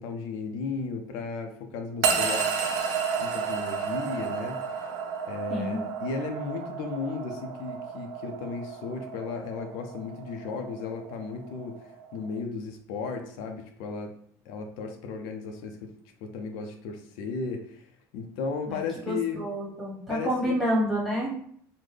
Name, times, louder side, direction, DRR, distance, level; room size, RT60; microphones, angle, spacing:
voice 1, 0.0-2.8 3.2-4.9 5.3-11.8 12.1-14.1 14.5-15.8 16.2-17.9 18.1-19.5 20.1-20.6, left 4 dB, 75° left, 4 dB, 0.5 m, -35 dB
sound 1, 2.0-12.4, right 6 dB, 90° right, 0.6 m, -32 dB
voice 2, 19.0-21.4, equal, ahead, -4 dB, 1.2 m, -28 dB
3.8 x 2.1 x 3.3 m, 0.62 s
cardioid pair, 145°, 8 cm